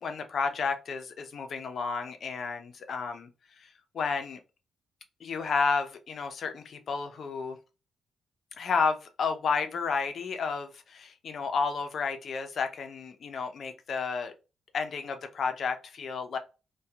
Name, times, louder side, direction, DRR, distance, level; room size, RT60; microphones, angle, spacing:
voice 1, 0.0-3.3 3.6-3.7 3.9-4.4 5.2-7.6 8.6-14.3 14.7-16.4, left 5 dB, 60° left, 0.5 m, -31 dB
2.6 x 2.2 x 2.3 m
cardioid pair, 70°, 0 cm